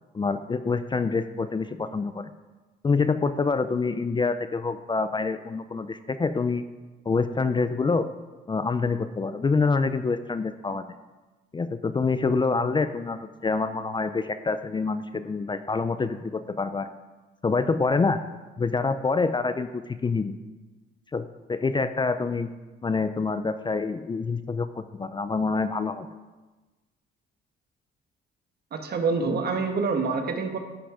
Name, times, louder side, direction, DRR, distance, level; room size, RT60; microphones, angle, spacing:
voice 1, 0.1-2.3 2.8-6.6 7.1-8.1 8.5-10.8 11.5-16.9 17.4-18.2 18.6-20.4 21.1-22.5 22.8-26.1, left 4 dB, 25° left, 11 dB, 0.4 m, -26 dB
voice 2, 28.7-30.6, right 4 dB, 55° right, 5 dB, 1.3 m, -26 dB
10.5 x 5.8 x 4.9 m, 1.2 s
cardioid pair, 90°, 20 cm